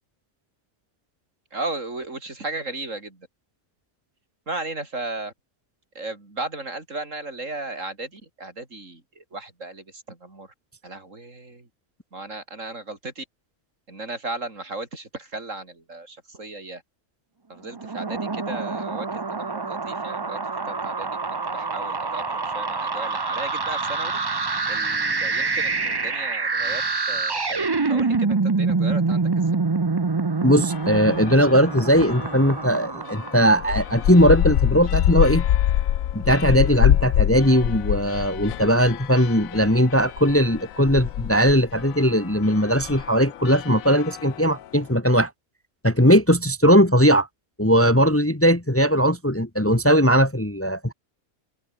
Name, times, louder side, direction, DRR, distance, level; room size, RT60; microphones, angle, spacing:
voice 1, 1.5-3.3 4.5-5.3 5.9-10.5 10.8-11.7 12.1-13.2 13.9-16.8 17.5-20.4 20.6-24.1 24.7-26.8 27.1-29.5, right 2 dB, 55° right, 4.6 m, -35 dB
sound 1, 17.7-34.1, right 4 dB, 25° right, 0.5 m, -26 dB
voice 2, 30.4-35.4 36.1-45.3 45.8-47.3 47.6-50.9, equal, 10° left, 1.8 m, -19 dB
sound 2, 30.7-32.6 33.1-44.6, left 12 dB, 70° left, 1.1 m, -26 dB
open air
omnidirectional pair, 1.5 m